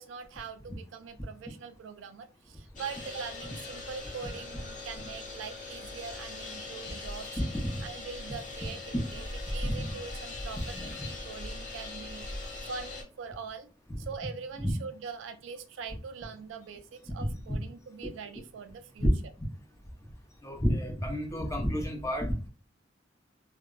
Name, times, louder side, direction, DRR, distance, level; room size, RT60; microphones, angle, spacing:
voice 1, 0.0-7.3 7.8-12.3 12.7-13.7 14.0-19.1, right 5 dB, 75° right, 9 dB, 0.3 m, -43 dB
sound 1, 2.8-13.0, left 2 dB, 40° left, 0.8 m, -40 dB
voice 2, 10.6-10.9 14.6-14.7 17.5-17.6 19.0-19.1 20.4-22.5, equal, 15° left, 0 dB, 0.7 m, -30 dB
2.1 x 2.0 x 3.7 m, 0.34 s
head